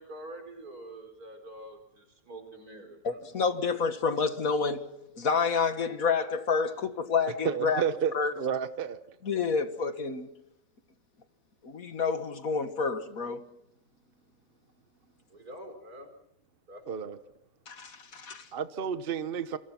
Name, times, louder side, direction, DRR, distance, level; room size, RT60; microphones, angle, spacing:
voice 1, 0.0-3.2 15.3-16.1 16.7-16.8, right 1 dB, 80° right, 5.2 m, -46 dB
voice 2, 3.0-4.8 5.2-7.8 8.1-8.3 9.2-10.3 11.6-13.4 17.7-18.5, left 5 dB, 70° left, 2.1 m, -29 dB
voice 3, 7.4-9.0 16.9-17.2 18.5-19.6, right 7 dB, 40° right, 1.1 m, -31 dB
28.5 x 23.5 x 6.0 m
omnidirectional pair, 1.6 m